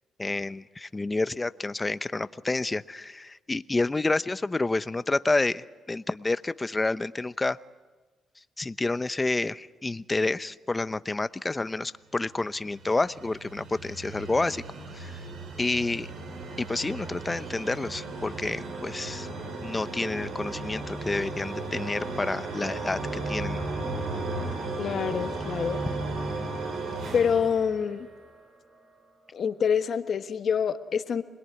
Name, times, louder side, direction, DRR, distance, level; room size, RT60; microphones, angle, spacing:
voice 1, 0.2-7.6 8.6-14.6 14.9-15.2 15.6-16.1 16.6-19.3 19.6-23.0 23.3-23.7, left 2 dB, 20° left, 14 dB, 0.8 m, -29 dB
sound 1, 12.3-28.5, right 3 dB, 75° right, 5.9 m, -35 dB
voice 2, 24.8-25.8 27.1-28.1 29.3-31.2, left 7 dB, 60° left, 9 dB, 1.4 m, -26 dB
26.5 x 21.0 x 9.6 m, 1.3 s
cardioid pair, 80°, 0 cm